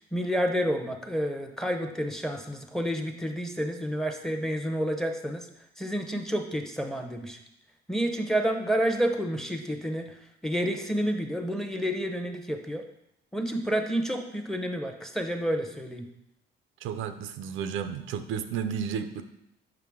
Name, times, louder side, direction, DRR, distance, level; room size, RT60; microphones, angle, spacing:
voice 1, 0.1-5.5 5.8-7.4 7.9-10.2 10.4-12.8 13.3-16.0, equal, ahead, 4 dB, 0.8 m, -29 dB
voice 2, 16.8-19.2, right 7 dB, 90° right, 9 dB, 0.5 m, -32 dB
5.8 x 5.6 x 3.6 m, 0.80 s
cardioid pair, 90°, 20 cm